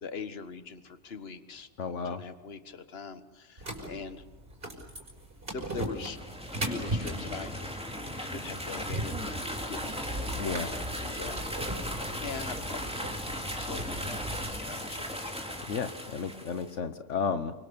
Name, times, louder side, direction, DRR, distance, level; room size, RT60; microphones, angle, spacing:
voice 1, 0.0-4.2 5.5-6.2 6.5-7.5 8.2-9.3 9.7-10.0 11.0-11.5 12.2-13.0 13.5-15.4, left 5 dB, 55° left, 11 dB, 1.6 m, -42 dB
voice 2, 1.8-2.2 10.4-10.7 15.7-17.5, left 5 dB, 80° left, 10 dB, 1.4 m, -32 dB
sound 1, 3.6-14.6, right 1 dB, 50° right, 5.6 m, -38 dB
sound 2, 5.9-16.7, equal, 5° right, 3.2 m, -37 dB
29.5 x 25.0 x 7.0 m, 1.1 s
omnidirectional pair, 1.2 m